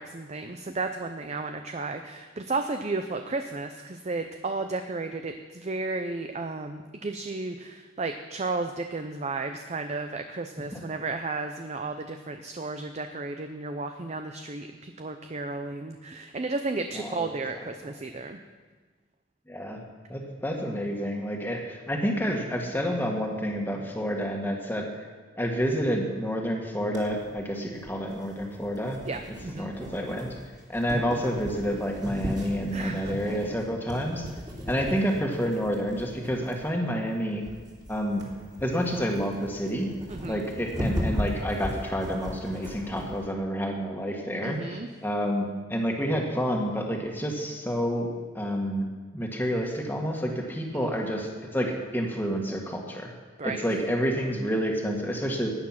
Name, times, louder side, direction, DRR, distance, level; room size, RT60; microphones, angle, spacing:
voice 1, 0.0-18.4 29.1-29.7 32.7-33.2 40.1-40.5 44.4-44.9 50.7-50.9 53.4-53.6, right 3 dB, 35° right, 6 dB, 0.6 m, -33 dB
voice 2, 16.9-17.3 19.5-19.8 20.1-24.9 25.4-29.0 29.6-30.3 30.7-34.3 34.7-37.4 37.9-38.3 38.6-39.9 40.3-44.8 45.0-48.1 48.3-48.9 49.1-53.1 53.4-55.5, equal, 10° left, 1 dB, 1.8 m, -29 dB
sound 1, 26.9-43.2, equal, 20° right, 2.9 m, -37 dB
15.5 x 9.8 x 5.9 m, 1.4 s
head